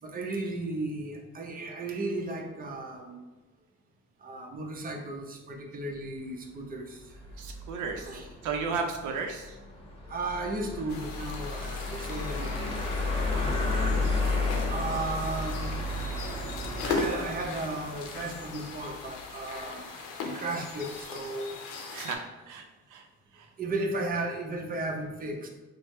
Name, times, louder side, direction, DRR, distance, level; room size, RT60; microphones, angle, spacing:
voice 1, 0.0-3.2 4.2-7.0 8.0-8.3 10.1-13.7 14.7-16.0 16.8-19.9 20.2-21.6 23.6-25.5, right 2 dB, 30° right, 1 dB, 0.6 m, -35 dB
sound 1, 7.0-19.2, left 2 dB, 20° left, 1.1 m, -33 dB
voice 2, 7.4-8.1 8.4-9.6 21.9-22.6 22.9-23.0 23.3-23.5, right 5 dB, 80° right, 3 dB, 0.5 m, -34 dB
sound 2, 10.9-22.2, left 4 dB, 90° left, 0.6 m, -39 dB
3.3 x 2.0 x 4.2 m, 1.1 s
cardioid pair, 90°, 30 cm